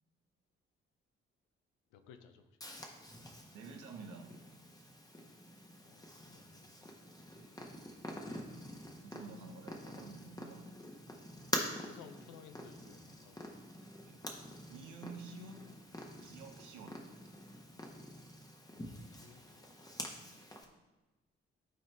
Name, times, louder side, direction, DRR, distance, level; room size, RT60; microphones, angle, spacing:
voice 1, 1.9-2.6 5.8-6.9 8.8-9.2 11.8-13.7 18.7-19.4 19.7-20.3, left 8 dB, 70° left, 9 dB, 0.7 m, -59 dB
Purr, 2.6-20.6, left 1 dB, 10° left, 1.5 m, -46 dB
voice 2, 3.5-4.3 9.0-10.6 14.1-14.2 14.7-15.6 16.2-17.0, right 4 dB, 70° right, 3 dB, 1.2 m, -50 dB
12.5 x 4.3 x 3.4 m, 1.1 s
figure-of-eight pair, 40°, 32 cm